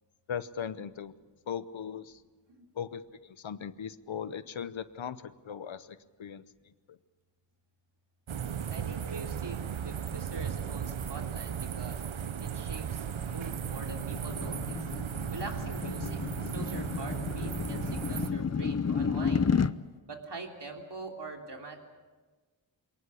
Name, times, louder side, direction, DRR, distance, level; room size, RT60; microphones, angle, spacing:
voice 1, 0.3-1.2 1.5-2.2 2.7-7.0, left 8 dB, 80° left, 15 dB, 0.9 m, -39 dB
sound 1, 8.3-18.3, right 8 dB, 90° right, 0.9 m, -36 dB
voice 2, 8.7-12.0 12.4-14.8 15.3-16.2 16.5-19.5 20.1-21.8, right 3 dB, 60° right, 2 dB, 3.4 m, -43 dB
sound 2, 13.3-19.7, left 6 dB, 35° left, 0.6 m, -32 dB
22.0 x 19.0 x 8.5 m, 1.4 s
wide cardioid pair, 50°, 46 cm